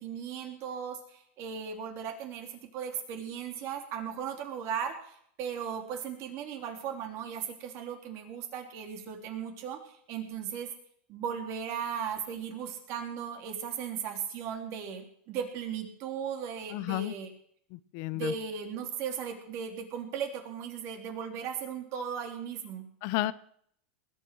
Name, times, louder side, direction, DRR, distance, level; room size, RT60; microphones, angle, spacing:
voice 1, 0.0-9.8 10.1-10.7 11.1-17.3 18.1-22.8, right 7 dB, 45° right, 4 dB, 3.6 m, -37 dB
voice 2, 16.7-17.1 17.7-18.3 23.0-23.3, left 16 dB, 50° left, 16 dB, 0.8 m, -32 dB
20.0 x 9.2 x 6.2 m, 0.65 s
supercardioid pair, 135°, 6 cm